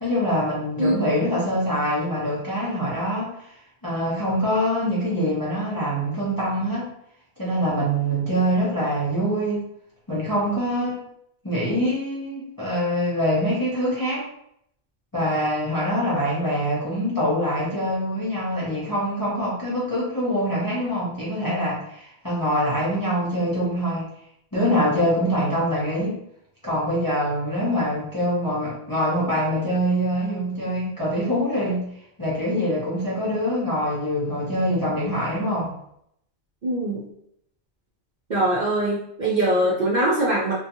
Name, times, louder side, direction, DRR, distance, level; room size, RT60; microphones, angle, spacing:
voice 1, 0.0-3.5 3.8-6.8 7.4-9.7 10.1-11.0 11.4-14.3 15.1-24.1 24.5-26.2 26.6-31.9 32.2-35.7, equal, 25° left, -7 dB, 0.6 m, -24 dB
voice 2, 36.6-37.1 38.3-40.5, right 1 dB, 50° right, -5 dB, 0.6 m, -22 dB
2.7 x 2.2 x 2.6 m, 0.74 s
omnidirectional pair, 1.1 m